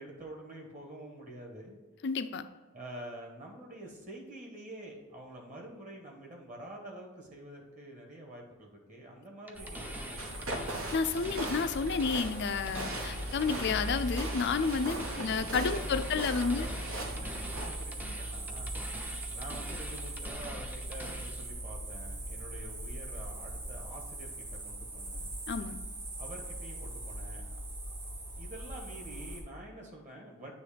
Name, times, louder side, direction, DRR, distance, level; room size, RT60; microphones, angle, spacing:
voice 1, 0.0-1.8 2.7-10.8 15.1-18.7 19.3-25.3 26.2-27.6 27.9-30.5, right 1 dB, 35° right, 0 dB, 1.4 m, -47 dB
voice 2, 2.0-2.4 10.9-16.7 25.5-25.8, left 5 dB, 55° left, 10 dB, 0.5 m, -31 dB
sound 1, 9.5-21.5, equal, 10° right, 0.5 m, -46 dB
sound 2, 9.5-29.4, right 1 dB, 60° right, 2.3 m, -40 dB
sound 3, 10.2-17.7, right 1 dB, 75° right, 1.2 m, -40 dB
9.2 x 3.1 x 5.1 m, 1.3 s
head